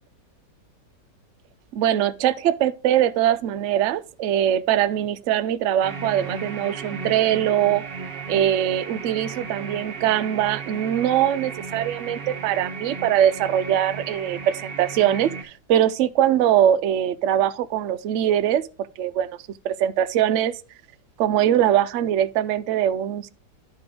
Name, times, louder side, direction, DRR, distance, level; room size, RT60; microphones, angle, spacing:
voice 1, 1.7-7.8 8.3-18.7 19.0-19.4 19.6-20.5 21.2-23.3, right 11 dB, 75° right, 0.7 m, -22 dB
sound 1, 5.8-15.4, right 5 dB, 45° right, 0.9 m, -35 dB
11.5 x 4.3 x 3.7 m
omnidirectional pair, 1.9 m